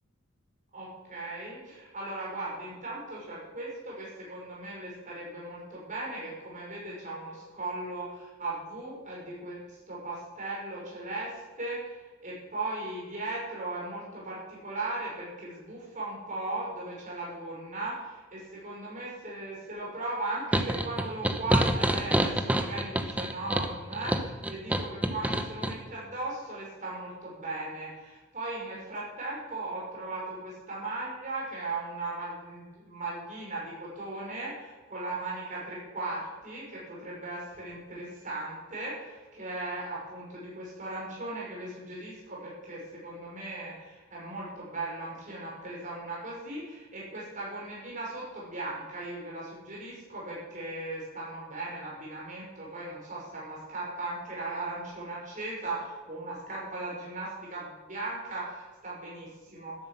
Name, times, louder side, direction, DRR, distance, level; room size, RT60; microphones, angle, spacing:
voice 1, 0.7-59.8, right 2 dB, 40° right, -5 dB, 5.9 m, -37 dB
sound 1, 20.5-25.8, right 1 dB, 5° right, 1.0 m, -27 dB
12.5 x 10.5 x 8.3 m, 1.2 s
head